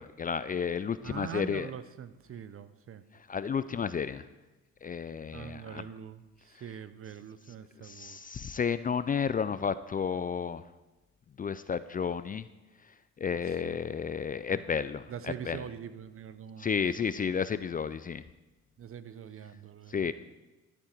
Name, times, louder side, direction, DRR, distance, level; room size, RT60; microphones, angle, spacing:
voice 1, 0.0-1.7 3.3-4.2 4.8-5.8 7.8-10.6 11.4-12.5 13.2-15.0 15.5-15.6 16.6-18.2 19.9-20.1, left 6 dB, 30° left, 14 dB, 0.4 m, -32 dB
voice 2, 1.0-3.0 5.3-8.2 13.4-13.8 14.5-14.6 15.1-17.1 18.8-20.1, right 8 dB, 45° right, 14 dB, 0.7 m, -43 dB
12.5 x 8.7 x 4.6 m, 1.1 s
cardioid pair, 90°, 30 cm